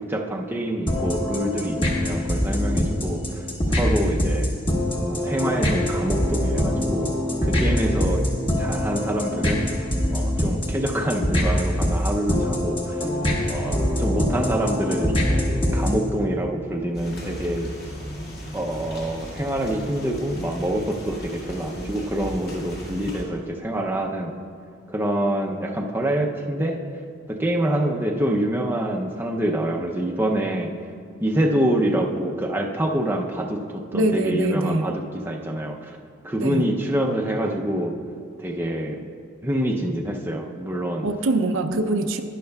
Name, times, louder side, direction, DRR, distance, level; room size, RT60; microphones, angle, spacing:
voice 1, 0.0-4.5 5.1-7.1 7.4-8.2 8.6-9.7 10.1-13.1 13.5-17.7 18.5-24.3 24.9-26.8 27.3-30.7 31.2-36.0 36.2-37.9 38.4-39.0 39.4-41.1, right 1 dB, 10° right, 1 dB, 0.5 m, -26 dB
sound 1, 0.9-16.1, left 1 dB, 25° left, 1.2 m, -24 dB
sound 2, 16.9-23.2, equal, 50° left, 2.2 m, -37 dB
voice 2, 33.9-34.9 36.4-36.6 41.0-42.2, right 2 dB, 65° right, 7 dB, 0.5 m, -23 dB
12.0 x 10.5 x 2.3 m, 2.2 s
head